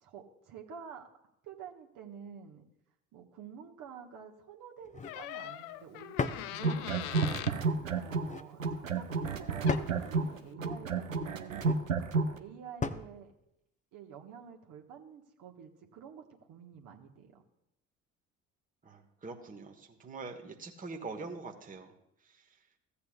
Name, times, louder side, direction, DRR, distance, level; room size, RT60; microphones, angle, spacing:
voice 1, 0.0-1.1 1.4-2.6 3.1-7.3 7.9-11.7 12.4-13.3 13.9-17.4, right 7 dB, 55° right, 1 dB, 1.4 m, -49 dB
sound 1, 4.8-5.2 6.2-6.5 8.1-8.5 9.7-10.0 11.4-11.8 12.8-13.1, left 4 dB, 20° left, 0.7 m, -36 dB
Door, 5.0-7.6 9.4-9.5 9.7-10.0, left 13 dB, 55° left, 0.6 m, -41 dB
sound 2, 6.5-8.3 8.6-12.4, right 4 dB, 90° right, 0.6 m, -31 dB
voice 2, 18.8-21.9 22.2-22.5, right 3 dB, 20° right, 3 dB, 1.3 m, -44 dB
15.5 x 8.3 x 2.4 m, 0.82 s
figure-of-eight pair, 55°, 39 cm